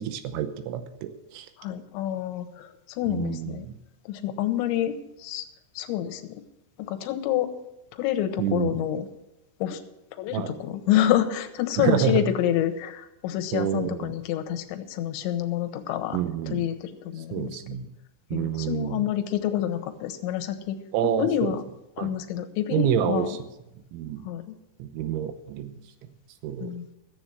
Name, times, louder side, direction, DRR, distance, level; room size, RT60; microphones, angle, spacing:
voice 1, 0.0-1.5 3.0-3.8 8.4-8.8 10.3-10.6 11.8-12.3 13.5-14.2 16.1-16.7 17.2-17.9 18.3-19.1 20.9-21.6 22.0-22.1 22.7-23.5 23.9-24.2 24.8-25.7 26.4-26.7, right 9 dB, 85° right, 10 dB, 3.2 m, -28 dB
voice 2, 1.6-2.7 3.0-3.7 4.1-4.9 5.2-5.4 5.8-6.2 6.9-7.5 8.0-9.1 9.6-9.8 10.2-16.2 16.5-17.5 18.3-20.8 21.2-21.6 22.0-23.3 24.3-24.4 26.6-26.8, left 11 dB, 80° left, 8 dB, 3.1 m, -27 dB
14.0 x 8.0 x 7.8 m, 0.90 s
omnidirectional pair, 5.4 m